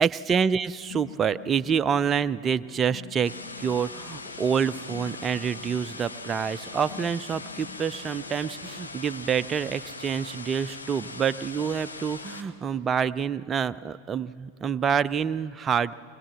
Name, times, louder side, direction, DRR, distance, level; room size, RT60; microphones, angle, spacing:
voice 1, 0.0-3.3 3.6-15.9, right 7 dB, 20° right, 13 dB, 0.5 m, -27 dB
sound 1, 0.9-8.9, left 9 dB, 60° left, 0.9 m, -48 dB
sound 2, 3.2-12.4, left 3 dB, 75° left, 1.2 m, -40 dB
22.0 x 21.5 x 7.3 m, 2.5 s
figure-of-eight pair, 90°, 0 cm